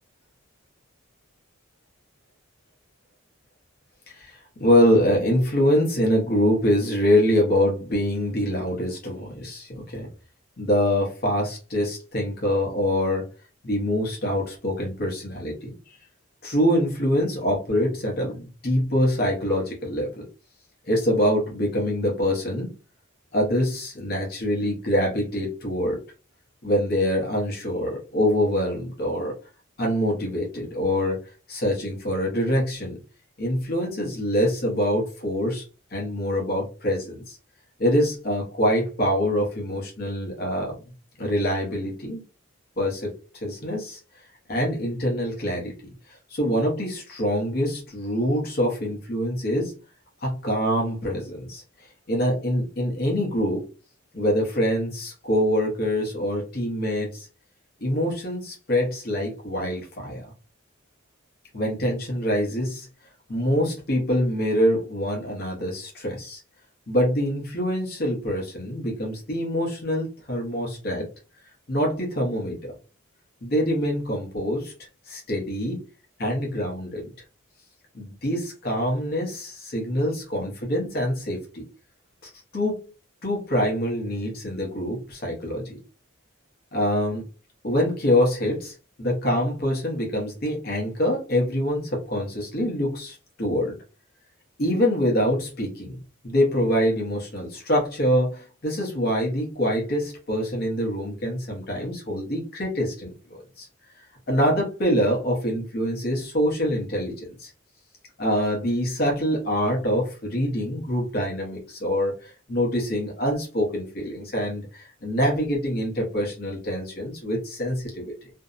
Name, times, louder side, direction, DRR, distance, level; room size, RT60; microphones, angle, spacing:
voice 1, 4.1-10.1 10.6-13.3 13.6-16.0 16.4-20.2 20.9-22.7 23.3-26.0 26.6-29.3 29.8-31.2 31.5-33.0 33.4-35.6 35.9-37.4 37.8-40.7 41.2-42.2 42.8-43.1 43.4-44.0 44.5-45.7 46.1-49.8 50.2-51.6 52.1-53.7 54.1-57.3 57.8-60.3 61.5-62.9 63.3-66.4 66.9-71.1 71.7-72.7 73.4-74.7 75.1-75.8 76.2-77.1 77.9-81.6 82.2-82.9 83.2-85.8 86.7-87.2 87.6-93.8 94.6-96.0 96.2-103.1 103.6-103.7 104.3-107.5 108.2-118.3, equal, 45° left, -2 dB, 0.7 m, -25 dB
2.6 x 2.0 x 2.4 m, 0.34 s
head